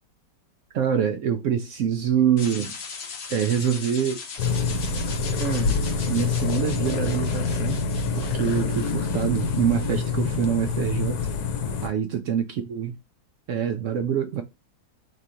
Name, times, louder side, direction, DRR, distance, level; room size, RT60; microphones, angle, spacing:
voice 1, 0.7-2.7 3.3-4.2 5.4-7.8 8.1-11.2 11.8-13.0 13.5-14.4, right 8 dB, 85° right, 0.6 m, -25 dB
sound 1, 2.4-10.4, left 5 dB, 55° left, 0.7 m, -40 dB
sound 2, 4.4-11.9, left 5 dB, 70° left, 1.2 m, -26 dB
3.7 x 2.8 x 4.8 m
omnidirectional pair, 1.8 m